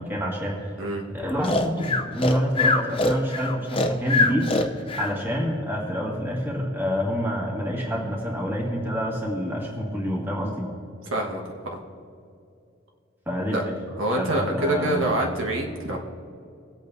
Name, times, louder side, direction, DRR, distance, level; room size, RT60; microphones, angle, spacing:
voice 1, 0.0-0.6 1.1-4.5 5.0-10.7 13.3-13.7 14.2-15.1, equal, 10° right, -3 dB, 2.0 m, -27 dB
Breathing, 1.4-5.1, left 3 dB, 25° left, 0.6 m, -23 dB
voice 2, 13.9-16.0, right 1 dB, 70° right, 0 dB, 1.5 m, -25 dB
20.0 x 8.5 x 2.7 m, 2.5 s
head